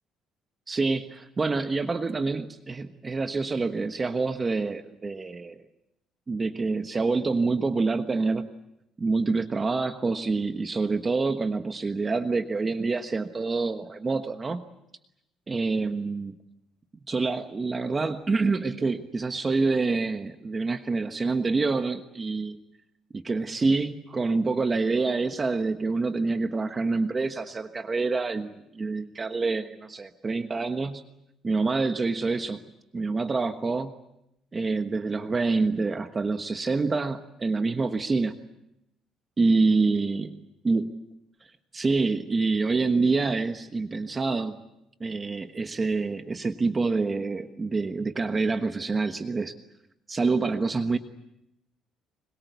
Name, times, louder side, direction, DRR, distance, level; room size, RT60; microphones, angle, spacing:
voice 1, 0.7-5.5 6.3-8.5 9.0-14.6 15.5-16.4 17.1-22.6 23.2-31.0 31.4-32.6 32.9-33.9 34.5-38.3 39.4-40.3 40.6-40.9 41.7-44.6 45.0-49.5 50.1-51.0, right 3 dB, 25° right, 8 dB, 1.3 m, -26 dB
25.5 x 22.5 x 8.2 m, 0.85 s
cardioid pair, 125°, 0 cm